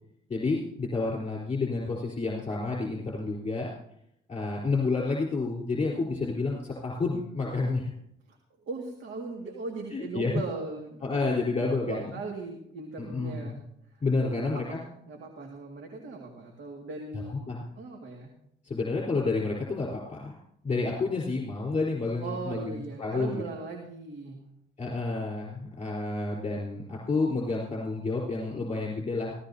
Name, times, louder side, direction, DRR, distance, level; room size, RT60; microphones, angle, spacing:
voice 1, 0.3-3.7 4.3-7.9 9.9-10.3 11.0-12.1 13.0-13.6 14.0-14.8 17.3-17.6 18.6-20.4 20.6-23.4 24.8-29.3, left 3 dB, 30° left, -3 dB, 4.0 m, -30 dB
voice 2, 8.6-11.2 11.9-13.6 13.9-14.0 14.3-17.4 17.8-18.3 22.2-24.4, right 3 dB, 70° right, 1 dB, 2.2 m, -38 dB
16.0 x 15.5 x 2.8 m, 0.73 s
cardioid pair, 90°, 20 cm